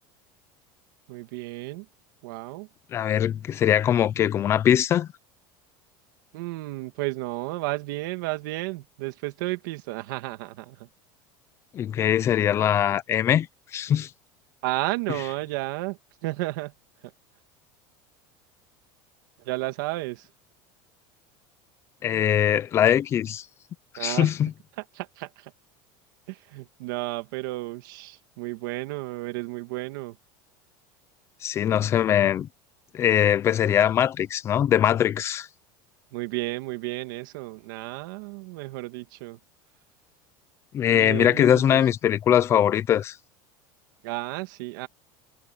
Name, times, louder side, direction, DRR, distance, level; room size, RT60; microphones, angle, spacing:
voice 1, 1.1-1.9 2.2-2.7 6.3-10.9 14.6-16.7 17.0-17.1 19.4-20.3 24.0-24.3 24.8-25.5 26.3-30.2 36.1-39.4 40.9-41.8 44.0-44.9, right 20 dB, 70° right, 2.3 m, -32 dB
voice 2, 2.9-5.1 11.7-13.5 13.7-14.1 22.0-23.4 24.0-24.5 31.4-32.5 32.9-35.5 40.7-43.2, left 10 dB, 25° left, 0.6 m, -21 dB
cardioid pair, 175°, 11 cm